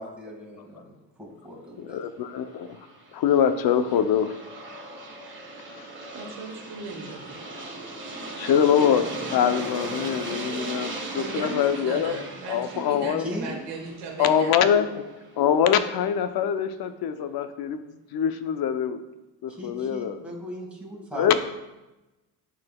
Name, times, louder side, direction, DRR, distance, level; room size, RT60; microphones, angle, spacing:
voice 1, 0.0-2.3 13.2-13.6 19.5-21.4, equal, 5° right, -2 dB, 1.7 m, -38 dB
voice 2, 1.8-2.8 3.1-4.3 5.8-5.9 8.4-12.2 12.5-13.2 14.2-14.9 15.4-17.8 18.1-19.0 19.4-20.2 21.2-21.4, left 8 dB, 60° left, 10 dB, 0.6 m, -23 dB
Aircraft, 2.5-15.3, right 2 dB, 30° right, 1.4 m, -38 dB
voice 3, 3.9-4.2 6.1-7.4 11.1-14.6, right 4 dB, 80° right, -1 dB, 1.2 m, -37 dB
10.5 x 3.9 x 2.3 m, 1.0 s
cardioid pair, 80°, 41 cm